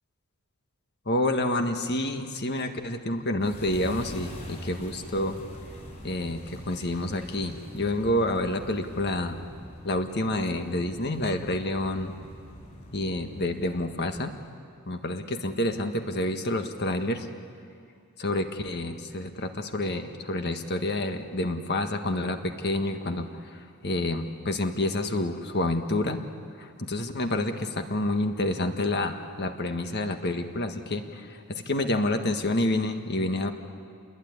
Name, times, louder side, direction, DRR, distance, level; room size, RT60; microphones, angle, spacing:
voice 1, 1.0-5.4 6.0-9.4 9.8-12.1 12.9-14.3 14.9-17.3 18.2-26.2 26.6-33.5, left 1 dB, 50° left, 6 dB, 1.6 m, -28 dB
sound 1, 3.4-14.4, equal, 35° left, 7.4 m, -44 dB
28.0 x 21.0 x 9.7 m, 2.3 s
head